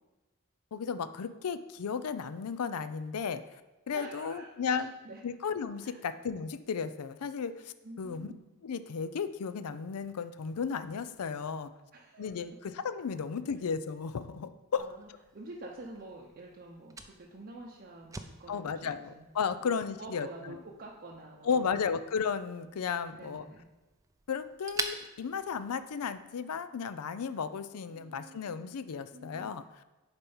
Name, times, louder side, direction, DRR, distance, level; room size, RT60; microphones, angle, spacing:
voice 1, 0.7-3.4 3.9-4.9 5.2-8.3 8.6-11.7 12.2-14.9 18.5-20.6 21.4-23.4 24.3-29.6, left 6 dB, 85° left, 12 dB, 0.5 m, -34 dB
voice 2, 3.9-5.2 5.8-6.0 7.8-8.4 11.9-12.4 14.8-19.2 19.6-21.9 23.1-23.7 27.9-28.6 29.1-29.5, right 2 dB, 45° right, -2 dB, 0.7 m, -48 dB
Fire, 14.8-26.3, right 3 dB, 15° right, 0.4 m, -46 dB
6.7 x 4.5 x 5.5 m, 1.1 s
head